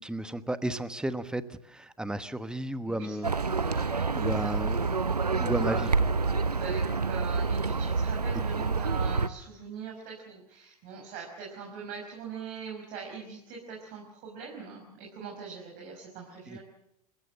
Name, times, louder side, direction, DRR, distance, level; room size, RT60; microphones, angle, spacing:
voice 1, 0.0-3.3 4.1-5.1 5.4-6.1 8.3-8.4 16.5-16.6, right 1 dB, 5° right, 13 dB, 1.2 m, -33 dB
voice 2, 2.8-3.2 3.6-5.0 5.3-5.5 6.4-16.6, right 6 dB, 45° right, 0 dB, 5.6 m, -42 dB
Livestock farm animals working animals, 3.2-9.3, right 4 dB, 85° right, 0.8 m, -28 dB
27.0 x 16.0 x 7.9 m, 0.83 s
figure-of-eight pair, 90°, 20 cm